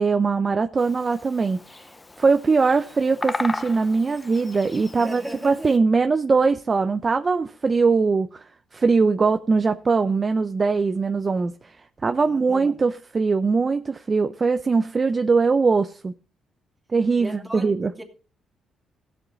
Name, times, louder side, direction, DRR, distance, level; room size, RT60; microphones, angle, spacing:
voice 1, 0.0-1.8 2.2-8.4 8.7-11.7 12.0-16.1 16.9-17.9, right 4 dB, 35° right, 0.6 m, -21 dB
Bird vocalization bird call bird song, 0.8-5.8, left 2 dB, 20° left, 0.7 m, -36 dB
voice 2, 4.9-5.8 12.2-12.8 17.2-18.0, right 1 dB, 15° right, 2.5 m, -37 dB
15.5 x 6.9 x 4.0 m
cardioid pair, 90°, 0 cm